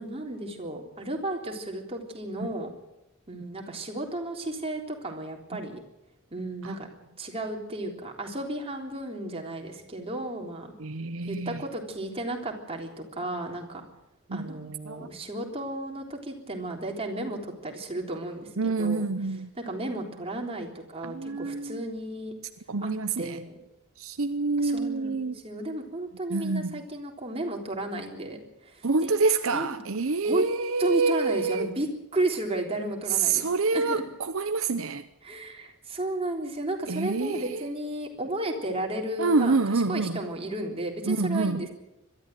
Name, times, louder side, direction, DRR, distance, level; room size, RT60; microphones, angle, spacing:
voice 1, 0.0-2.7 3.3-5.8 6.3-6.9 7.2-10.7 11.3-13.8 14.3-19.1 19.6-22.3 22.8-22.9 23.2-23.6 24.6-29.1 29.5-29.8 30.2-30.4 30.8-34.0 35.2-41.7, right 1 dB, 30° right, 3.6 m, -33 dB
voice 2, 10.8-11.6 14.3-15.1 18.6-19.5 21.0-21.8 22.7-23.4 24.0-25.3 26.3-26.8 28.8-31.7 33.1-35.0 36.9-37.7 39.2-40.2 41.1-41.7, right 4 dB, 70° right, 0.8 m, -27 dB
22.0 x 13.5 x 9.2 m
head